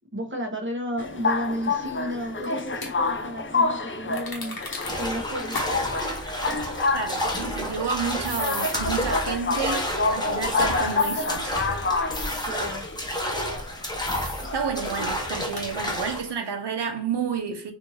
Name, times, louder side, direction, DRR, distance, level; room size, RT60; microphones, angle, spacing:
voice 1, 0.1-4.6 5.0-5.6 12.5-12.9, equal, 25° right, 1.1 m, -32 dB
sound 1, 1.0-15.8, left 3 dB, 30° left, 0.5 m, -28 dB
sound 2, 2.4-2.9 4.1-5.1 5.5-5.7 6.0-6.1 8.2-8.7 11.0-11.4 12.1-12.5 14.1-14.5 14.9-15.0 15.5-15.7, left 3 dB, 55° left, 1.1 m, -35 dB
sound 3, 4.7-16.3, equal, 10° left, 1.0 m, -31 dB
voice 2, 6.9-11.5 14.5-17.7, right 6 dB, 70° right, 0.9 m, -30 dB
3.5 x 2.7 x 2.7 m
wide cardioid pair, 60°, 43 cm